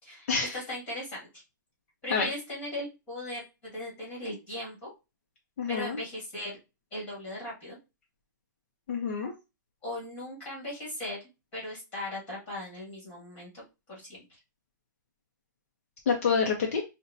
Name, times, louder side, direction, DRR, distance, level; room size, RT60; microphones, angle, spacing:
voice 1, 0.0-1.4 2.0-4.9 5.7-6.6 6.9-7.8 9.8-13.6 13.9-14.4, left 1 dB, 15° left, -4 dB, 1.5 m, -38 dB
voice 2, 5.6-6.0 8.9-9.3 16.1-16.8, left 5 dB, 40° left, 1 dB, 0.5 m, -27 dB
5.4 x 2.1 x 2.6 m, 0.27 s
hypercardioid pair, 175°, 11 cm